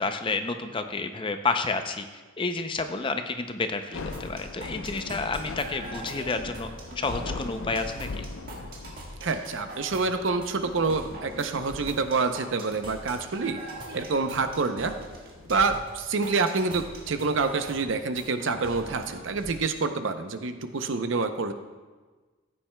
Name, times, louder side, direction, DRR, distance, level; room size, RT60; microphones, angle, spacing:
voice 1, 0.0-2.1 2.4-6.7 7.0-8.3, left 3 dB, 25° left, 8 dB, 0.4 m, -30 dB
Thunder / Rain, 3.7-16.9, left 3 dB, 70° left, 0.5 m, -42 dB
sound 1, 4.1-19.6, right 1 dB, 45° right, 1.6 m, -42 dB
voice 2, 9.2-13.6 13.9-14.9 15.5-21.5, right 4 dB, 65° right, 9 dB, 0.6 m, -27 dB
14.5 x 8.8 x 2.2 m, 1.3 s
head